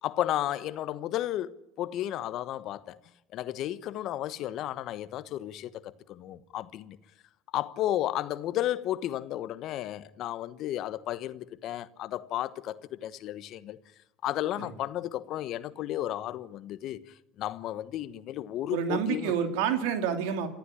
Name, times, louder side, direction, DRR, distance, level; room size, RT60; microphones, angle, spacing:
voice 1, 0.0-3.0 3.3-7.0 7.5-13.8 14.2-17.0 17.4-19.3, left 13 dB, 55° left, 1.2 m, -33 dB
voice 2, 18.7-20.5, right 7 dB, 70° right, 2.9 m, -28 dB
28.0 x 14.5 x 9.9 m
hypercardioid pair, 80°, 0 cm